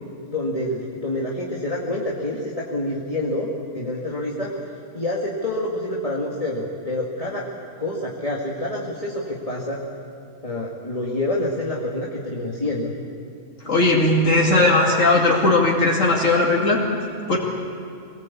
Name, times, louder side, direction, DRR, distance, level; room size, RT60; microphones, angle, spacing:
voice 1, 0.2-4.5 4.9-7.5 7.8-9.8 10.4-12.9, left 1 dB, 30° left, -5 dB, 2.1 m, -27 dB
voice 2, 13.6-16.8 17.3-17.4, left 2 dB, 80° left, -3 dB, 2.8 m, -18 dB
22.5 x 19.5 x 8.4 m, 2.5 s
omnidirectional pair, 1.3 m